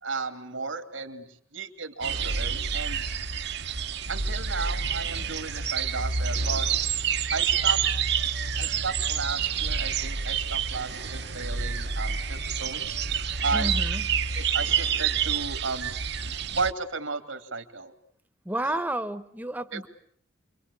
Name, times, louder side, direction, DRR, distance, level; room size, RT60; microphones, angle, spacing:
voice 1, 0.0-3.0 4.1-6.7 7.3-7.8 8.6-13.0 13.4-13.7 14.3-15.9 16.6-17.9 18.7-18.8 19.7-19.9, right 4 dB, 80° right, 7 dB, 2.8 m, -34 dB
sound 1, 2.0-16.7, right 6 dB, 55° right, 1.1 m, -28 dB
voice 2, 13.5-14.1 18.4-19.9, right 1 dB, 10° right, 12 dB, 1.1 m, -31 dB
29.0 x 24.0 x 8.4 m, 0.66 s
head